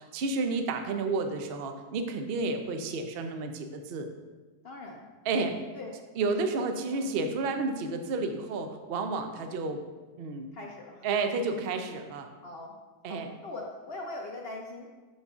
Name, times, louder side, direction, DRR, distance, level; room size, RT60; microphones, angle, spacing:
voice 1, 0.0-4.1 5.3-5.6 6.2-9.8 10.2-10.5 11.0-12.3 13.0-13.3, right 3 dB, 90° right, 6 dB, 0.5 m, -31 dB
voice 2, 4.6-5.1 5.7-5.9 6.3-6.4 6.9-7.1 10.5-11.1 12.4-12.7 13.1-14.9, left 2 dB, 65° left, 0 dB, 0.5 m, -41 dB
12.0 x 4.0 x 2.4 m, 1.3 s
omnidirectional pair, 1.8 m